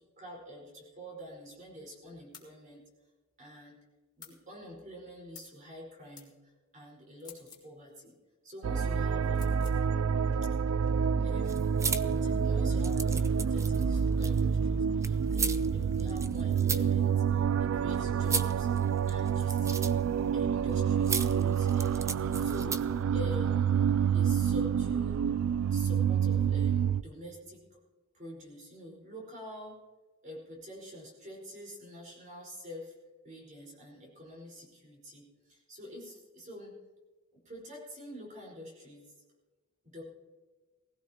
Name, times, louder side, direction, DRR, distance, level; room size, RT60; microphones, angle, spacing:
voice 1, 0.0-2.9 3.4-3.8 4.2-8.2 8.4-9.6 10.4-10.5 11.0-11.5 12.0-18.7 19.1-20.0 20.3-23.8 24.1-25.3 25.6-27.8 28.1-29.8 30.2-32.9 33.2-36.8 37.3-39.1 39.8-40.0, left 1 dB, 35° right, -2 dB, 4.7 m, -46 dB
sound 1, 2.3-2.5 4.2-4.4 5.3-5.6 6.1-6.3 7.2-7.7 9.3-9.8, left 7 dB, 20° left, 2.0 m, -51 dB
sound 2, 8.6-27.0, right 7 dB, 85° right, 0.4 m, -28 dB
sound 3, 11.4-23.0, right 5 dB, 15° right, 0.5 m, -38 dB
19.5 x 16.0 x 2.9 m, 1.3 s
head